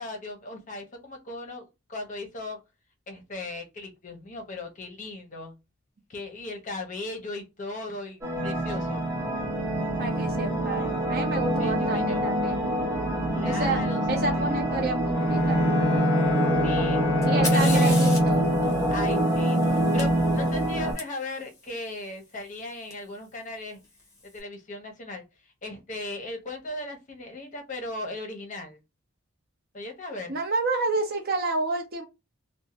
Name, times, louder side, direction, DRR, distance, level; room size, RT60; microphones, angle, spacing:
voice 1, 0.0-2.6 3.1-5.5 6.1-9.0 11.6-12.3 13.3-14.0 14.3-14.6 16.6-17.0 17.3-18.0 18.9-23.8 24.3-25.2 25.6-28.8 29.7-30.3, left 2 dB, 40° left, 0.7 m, -37 dB
sound 1, 8.2-20.9, right 1 dB, 15° right, 0.9 m, -25 dB
voice 2, 10.0-12.7 13.4-15.6 17.3-18.5 30.3-32.0, right 2 dB, 50° right, 0.7 m, -29 dB
Bowed string instrument, 15.1-19.8, left 4 dB, 70° left, 0.4 m, -30 dB
Fire, 17.2-21.0 22.9-23.0 23.8-24.2, left 3 dB, 15° left, 0.9 m, -38 dB
2.6 x 2.1 x 2.9 m
head